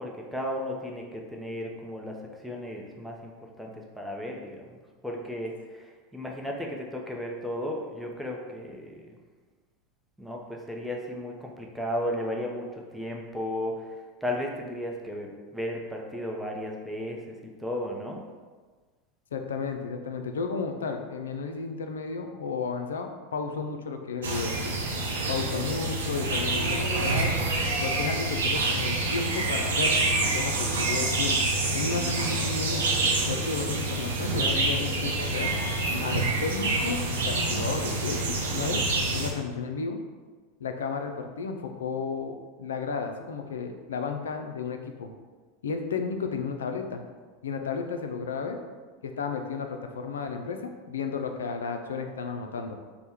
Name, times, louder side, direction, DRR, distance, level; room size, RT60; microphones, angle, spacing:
voice 1, 0.0-2.1 2.4-3.3 3.6-9.2 10.2-17.3 17.6-18.2, left 1 dB, ahead, -1 dB, 0.7 m, -34 dB
voice 2, 19.3-24.8 25.3-27.4 27.8-32.9 33.3-35.5 36.0-38.8 39.1-40.0 40.6-45.1 45.6-47.0 47.4-48.6 49.0-52.8, left 5 dB, 85° left, 5 dB, 0.4 m, -33 dB
sound 1, 24.2-39.3, right 2 dB, 80° right, 0.6 m, -27 dB
3.4 x 2.1 x 4.3 m, 1.4 s
hypercardioid pair, 90°, 0 cm